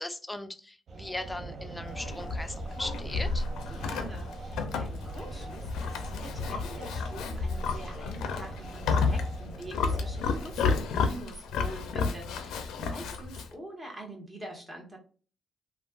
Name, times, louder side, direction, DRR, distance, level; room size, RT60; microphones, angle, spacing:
voice 1, 0.0-3.4, left 1 dB, 10° left, 8 dB, 0.4 m, -38 dB
sound 1, 0.9-10.8, right 3 dB, 50° right, 0.5 m, -43 dB
Livestock farm animals working animals, 1.8-13.5, left 4 dB, 85° left, 0.4 m, -32 dB
voice 2, 3.7-15.0, right 1 dB, 15° right, 0 dB, 1.3 m, -45 dB
3.2 x 2.3 x 2.4 m, 0.38 s
cardioid pair, 90°, 0 cm